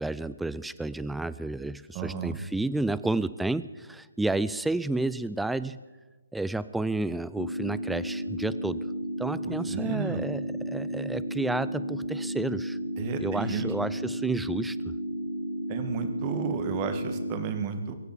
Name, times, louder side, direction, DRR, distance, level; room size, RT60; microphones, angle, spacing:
voice 1, 0.0-5.8 6.3-8.8 9.2-12.8 13.2-14.9, right 2 dB, 5° right, 16 dB, 0.4 m, -31 dB
voice 2, 1.9-2.4 9.4-10.2 13.0-13.7 15.7-17.9, right 6 dB, 25° right, 8 dB, 1.7 m, -32 dB
sound 1, 7.4-17.4, equal, 85° right, 6.0 m, -33 dB
22.5 x 8.0 x 7.3 m, 1.3 s
figure-of-eight pair, 140°, 0 cm